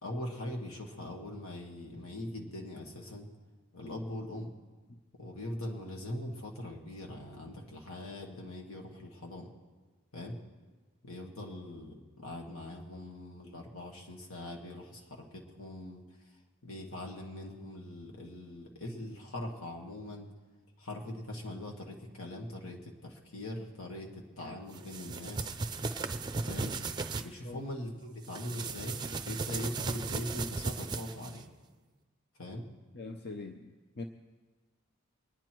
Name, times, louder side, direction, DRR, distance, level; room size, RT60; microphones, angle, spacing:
voice 1, 0.0-3.3 3.7-4.5 5.2-9.5 10.1-10.4 11.0-16.0 16.6-20.3 20.8-25.5 26.4-26.8 27.2-31.5 32.4-32.6, left 1 dB, 80° left, 0 dB, 2.0 m, -41 dB
sound 1, 24.7-27.3 28.2-31.4, right 4 dB, 20° right, 0.5 m, -36 dB
voice 2, 32.9-34.0, left 3 dB, 50° left, 4 dB, 0.7 m, -43 dB
24.5 x 9.6 x 4.6 m, 1.3 s
head